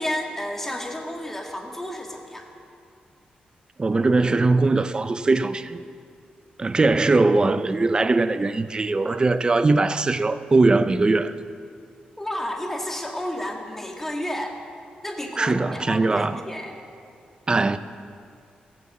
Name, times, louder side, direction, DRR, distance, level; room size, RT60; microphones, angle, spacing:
voice 1, 0.0-2.5 12.2-14.6 15.0-16.7, left 1 dB, 10° left, 2.0 m, -31 dB
voice 2, 3.8-5.8 6.6-11.3 15.4-16.4 17.5-17.8, right 3 dB, 30° right, 0.5 m, -20 dB
16.0 x 7.3 x 7.7 m
cardioid pair, 85°, 3 cm